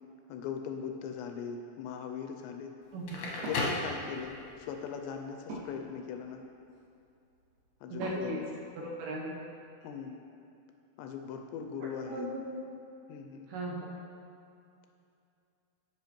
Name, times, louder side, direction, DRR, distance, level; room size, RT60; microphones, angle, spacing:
voice 1, 0.3-2.7 3.4-6.4 7.8-8.5 9.8-10.2 11.0-12.3 13.1-13.5, left 7 dB, 85° left, 5 dB, 2.6 m, -40 dB
Crackle, 2.9-4.6, left 2 dB, 70° left, 1.8 m, -34 dB
Wood, 3.3-9.4, right 1 dB, 55° right, 3.4 m, -48 dB
voice 2, 7.9-8.4 8.8-9.3 11.8-12.6 13.5-13.9, right 2 dB, 75° right, -4 dB, 2.6 m, -37 dB
15.5 x 5.6 x 3.0 m, 2.6 s
omnidirectional pair, 5.1 m